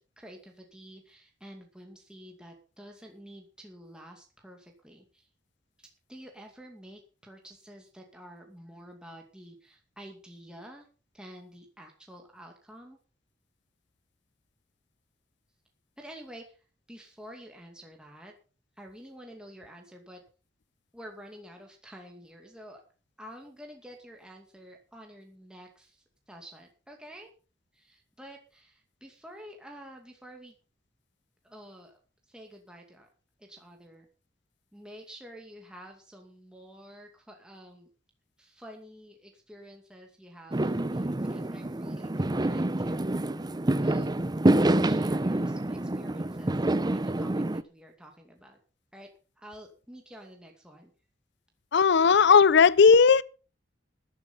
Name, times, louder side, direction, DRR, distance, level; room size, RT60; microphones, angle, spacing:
voice 1, 0.2-5.3 5.8-10.9 11.1-13.0 16.0-16.6 16.9-18.3 18.8-20.2 20.9-22.8 23.2-27.3 27.7-30.6 31.4-32.0 32.3-33.1 33.4-34.1 34.7-37.9 38.4-43.5 43.8-44.1 44.8-48.6 48.9-49.1 49.4-50.9, equal, 5° right, 2.4 m, -49 dB
Fireworks, 40.5-47.6, right 1 dB, 20° right, 0.7 m, -27 dB
voice 2, 51.7-53.2, left 5 dB, 65° left, 0.5 m, -17 dB
13.0 x 11.0 x 5.5 m
head